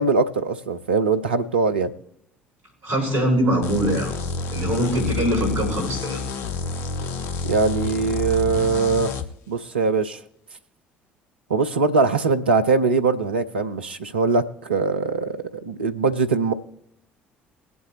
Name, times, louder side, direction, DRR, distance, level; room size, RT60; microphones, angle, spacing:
voice 1, 0.0-1.9 7.4-9.1 9.5-10.2 11.5-16.5, right 4 dB, 85° right, 8 dB, 0.8 m, -22 dB
voice 2, 2.8-4.1 4.5-6.2, equal, 60° right, 0 dB, 5.5 m, -22 dB
sound 1, 3.6-9.3, left 4 dB, 60° left, 1.0 m, -29 dB
21.0 x 8.2 x 3.1 m, 0.72 s
figure-of-eight pair, 55°, 6 cm